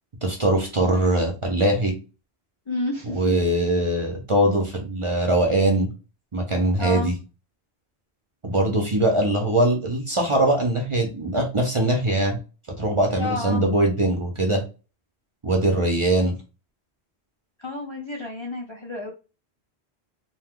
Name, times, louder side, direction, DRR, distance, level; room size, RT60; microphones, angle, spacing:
voice 1, 0.2-1.9 3.1-5.9 6.3-7.1 8.4-12.4 12.8-14.6 15.4-16.3, right 1 dB, 35° right, 2 dB, 0.6 m, -21 dB
voice 2, 2.7-3.3 6.8-7.1 13.2-13.6 17.6-19.1, left 2 dB, 45° left, -1 dB, 0.4 m, -30 dB
2.7 x 2.2 x 3.5 m, 0.31 s
omnidirectional pair, 1.1 m